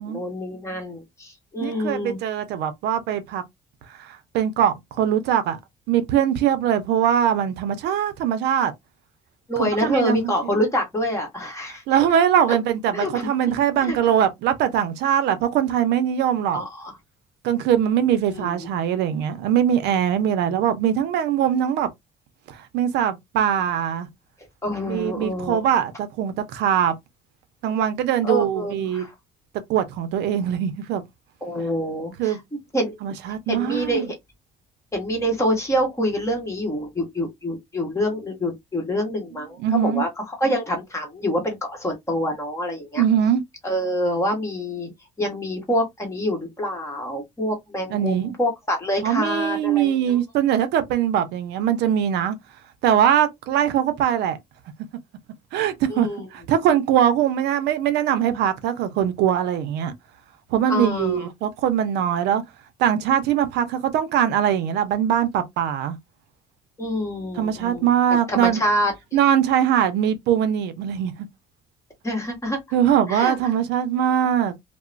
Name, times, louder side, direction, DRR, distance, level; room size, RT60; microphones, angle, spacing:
voice 1, 0.0-2.2 9.5-11.8 12.5-12.6 12.9-13.3 13.8-14.0 16.5-16.9 18.3-18.7 24.6-25.7 28.2-29.1 31.4-32.4 32.7-33.0 33.5-34.1 34.9-43.0 43.6-44.9 45.2-50.2 55.9-56.3 60.7-61.3 66.8-67.8 68.3-68.9 72.0-72.6 73.1-73.3, equal, 15° left, 1.1 m, -26 dB
voice 2, 1.6-3.4 3.9-5.6 5.9-8.7 9.6-10.3 11.9-16.6 17.4-21.9 22.5-24.1 24.9-27.0 27.6-29.1 29.7-31.0 32.2-32.4 33.0-34.1 39.6-40.0 43.0-43.4 47.9-48.4 49.0-52.4 52.8-54.4 55.5-59.9 60.5-62.4 62.8-66.0 67.4-68.6 69.1-71.1 72.7-74.5, right 9 dB, 85° right, 0.5 m, -22 dB
2.9 x 2.1 x 2.4 m
cardioid pair, 125°, 17 cm